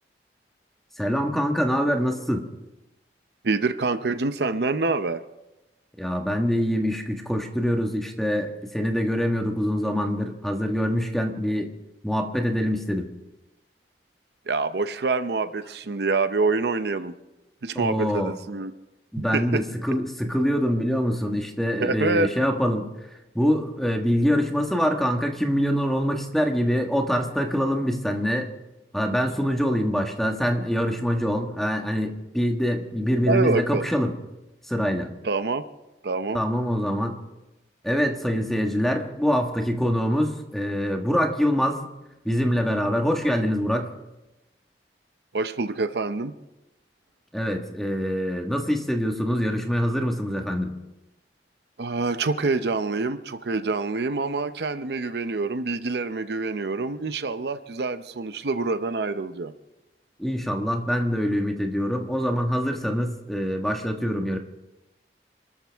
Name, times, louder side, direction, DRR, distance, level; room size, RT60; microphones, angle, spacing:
voice 1, 1.0-2.4 6.0-11.7 12.0-13.1 17.7-18.3 19.1-22.9 23.3-28.5 28.9-34.2 34.7-35.1 36.3-37.2 37.8-41.9 42.2-43.9 47.3-50.7 60.2-64.4, equal, ahead, 3 dB, 1.4 m, -24 dB
voice 2, 3.4-5.2 14.5-17.1 17.6-18.7 19.2-19.6 21.8-22.3 33.2-33.9 35.2-35.6 36.0-36.4 45.3-46.3 51.8-59.5, right 3 dB, 70° right, 11 dB, 0.7 m, -26 dB
28.0 x 13.5 x 3.5 m, 0.99 s
head